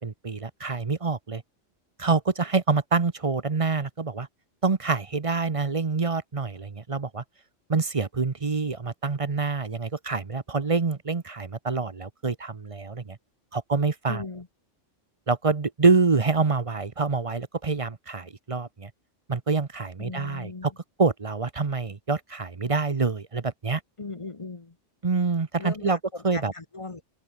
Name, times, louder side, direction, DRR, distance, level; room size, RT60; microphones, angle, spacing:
voice 1, 0.0-1.4 2.0-4.3 4.6-7.2 7.7-13.2 13.5-14.2 15.3-18.9 19.3-20.7 21.0-23.8 25.0-26.0 26.2-26.5, right 4 dB, 30° right, 0.9 m, -26 dB
voice 2, 14.1-14.5 20.0-20.7 24.0-24.7 25.6-27.0, left 3 dB, 25° left, 1.1 m, -38 dB
omnidirectional pair, 1.3 m